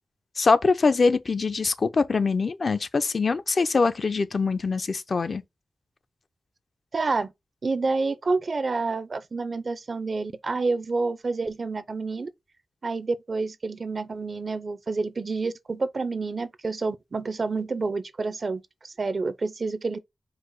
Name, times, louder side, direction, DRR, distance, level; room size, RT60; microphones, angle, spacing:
voice 1, 0.4-5.4, left 4 dB, 55° left, 0.4 m, -23 dB
voice 2, 6.9-7.3 7.6-12.3 12.8-20.0, right 3 dB, 55° right, 0.5 m, -28 dB
4.7 x 2.0 x 4.5 m
wide cardioid pair, 75°, 0 cm